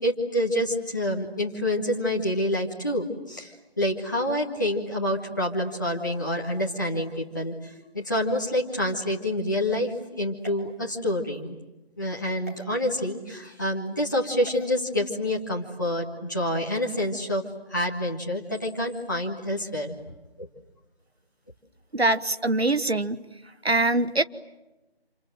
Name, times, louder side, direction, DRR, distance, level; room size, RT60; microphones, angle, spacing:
voice 1, 0.0-11.6 12.0-17.4 17.7-20.0, left 1 dB, 20° left, -4 dB, 1.7 m, -27 dB
sound 1, 10.4-11.4 12.4-12.6 14.4-14.7, right 2 dB, 15° right, 2.4 m, -47 dB
voice 2, 21.9-23.2 23.6-24.2, right 2 dB, 80° right, 12 dB, 1.5 m, -23 dB
28.5 x 27.5 x 7.7 m, 1.0 s
figure-of-eight pair, 170°, 31 cm